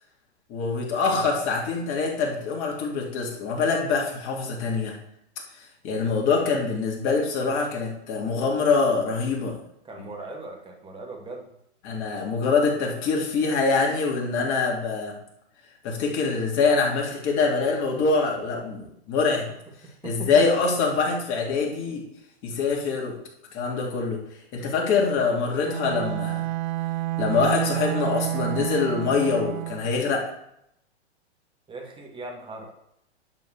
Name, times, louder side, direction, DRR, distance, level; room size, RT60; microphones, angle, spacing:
voice 1, 0.5-5.0 5.8-9.6 11.8-15.1 15.8-19.5 20.0-22.0 22.4-23.2 23.5-24.2 24.5-26.4 27.2-30.3, left 4 dB, 35° left, -1 dB, 3.3 m, -24 dB
voice 2, 9.8-11.5 20.0-20.3 31.7-32.7, right 2 dB, 15° right, 1 dB, 2.4 m, -39 dB
Bowed string instrument, 25.6-30.0, right 17 dB, 45° right, 0.5 m, -29 dB
10.5 x 5.6 x 6.7 m, 0.74 s
hypercardioid pair, 125°, 34 cm